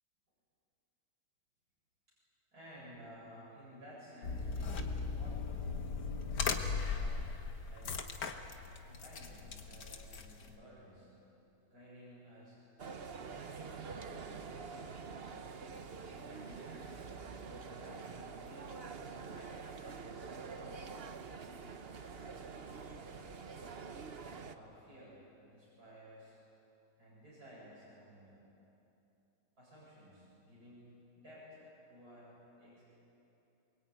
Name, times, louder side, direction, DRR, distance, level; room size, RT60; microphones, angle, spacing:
voice 1, 2.5-5.7 6.7-7.2 7.6-8.2 8.8-11.1 11.7-12.6 13.2-15.6 16.1-18.8 19.2-20.9 21.5-23.4 24.5-26.4 27.0-28.4 29.6-31.6 31.9-32.3 32.6-32.8, equal, 60° right, -8 dB, 8.4 m, -56 dB
sound 1, 4.2-10.6, left 5 dB, 75° left, 2.0 m, -38 dB
sound 2, 12.8-24.6, right 5 dB, 40° right, 1.1 m, -46 dB
28.0 x 22.5 x 9.4 m, 2.9 s
omnidirectional pair, 1.8 m